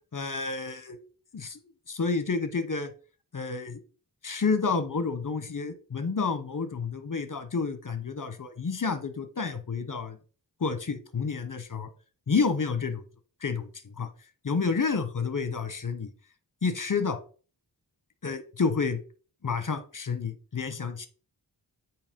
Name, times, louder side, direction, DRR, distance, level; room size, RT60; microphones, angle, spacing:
voice 1, 0.1-1.0 1.3-1.6 1.9-2.9 3.3-3.8 4.2-10.2 10.6-11.9 12.3-13.0 13.4-13.7 14.0-14.1 14.4-16.1 16.6-17.2 18.2-19.0 19.4-21.1, left 4 dB, 45° left, 11 dB, 1.1 m, -29 dB
8.1 x 3.0 x 5.3 m, 0.38 s
wide cardioid pair, 55°, 42 cm